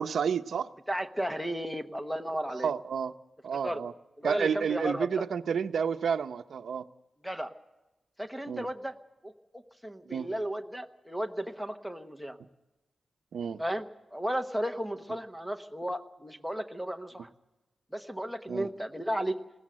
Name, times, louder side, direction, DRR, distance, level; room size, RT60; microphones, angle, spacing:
voice 1, 0.0-0.7 2.5-3.1 3.4-3.9 4.2-6.8 8.5-8.7 10.1-10.3 13.3-13.6 18.5-18.7, right 7 dB, 80° right, 9 dB, 0.8 m, -30 dB
voice 2, 0.9-2.7 3.6-3.8 4.2-5.2 7.2-7.5 8.2-8.9 9.2-12.4 13.6-17.3 17.9-19.4, right 1 dB, ahead, 5 dB, 1.1 m, -34 dB
20.0 x 17.0 x 7.6 m, 1.0 s
wide cardioid pair, 175°, 0 cm